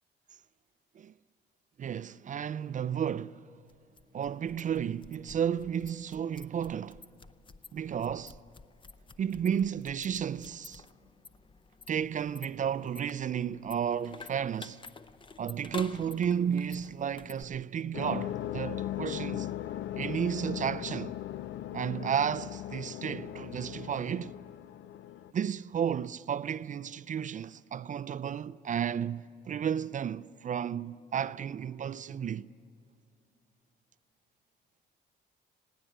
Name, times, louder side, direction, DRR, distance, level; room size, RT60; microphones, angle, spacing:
voice 1, 1.8-3.5 4.1-7.0 7.7-8.4 9.2-10.8 11.9-14.8 15.4-19.5 19.9-21.1 21.7-24.3 25.3-32.5, right 8 dB, 40° right, 0.4 m, -33 dB
sound 1, 3.7-17.4, left 4 dB, 25° left, 0.6 m, -51 dB
sound 2, 17.9-25.3, left 12 dB, 70° left, 0.5 m, -38 dB
20.5 x 16.5 x 7.8 m
cardioid pair, 90°, 20 cm